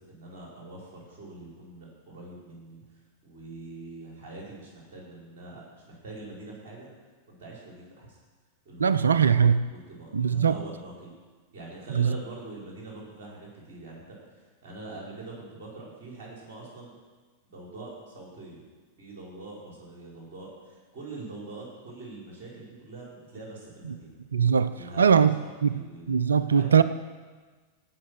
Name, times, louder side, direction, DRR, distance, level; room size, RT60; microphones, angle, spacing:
voice 1, 0.1-2.8 3.2-6.9 7.3-8.2 8.6-9.2 9.7-11.1 11.5-14.0 14.4-16.9 17.4-18.6 19.0-24.2 24.6-26.8, right 2 dB, 50° right, -3 dB, 4.3 m, -44 dB
voice 2, 8.8-9.6 10.1-10.6 12.0-12.1 24.3-24.7 25.0-25.3 25.6-25.8 26.1-26.8, right 7 dB, 70° right, 15 dB, 0.4 m, -20 dB
17.0 x 6.1 x 6.2 m, 1.4 s
figure-of-eight pair, 90°, 0 cm